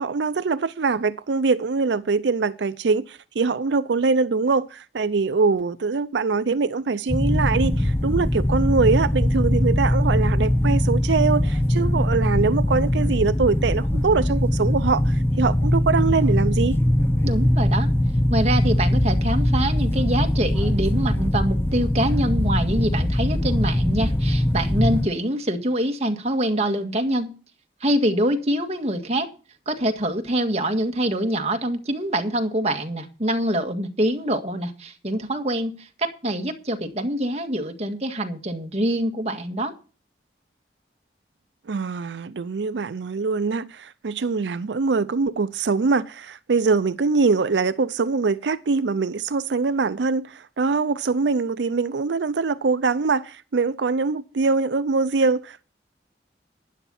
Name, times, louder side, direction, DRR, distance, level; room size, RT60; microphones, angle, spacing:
voice 1, 0.0-16.8 41.7-55.6, right 4 dB, 85° right, 0.5 m, -23 dB
sound 1, 7.1-25.1, left 1 dB, 15° left, 0.5 m, -21 dB
voice 2, 17.2-17.9 18.3-27.3 27.8-29.3 29.7-39.7, right 1 dB, 35° right, 1.8 m, -25 dB
12.5 x 10.0 x 4.2 m
head